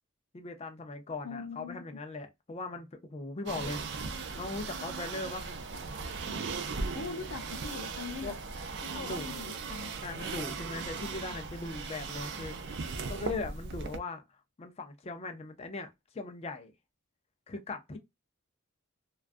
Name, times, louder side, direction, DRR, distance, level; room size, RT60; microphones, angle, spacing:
voice 1, 0.3-5.6 8.2-8.4 8.9-9.3 10.0-12.5 13.1-14.2 14.6-16.7 17.5-18.0, left 3 dB, 30° left, 0.4 m, -39 dB
voice 2, 1.2-1.9 6.9-8.3 8.8-9.9 17.9-18.0, left 4 dB, 80° left, 0.6 m, -41 dB
sound 1, 3.5-14.0, right 4 dB, 55° right, 0.4 m, -38 dB
2.3 x 2.3 x 2.4 m
head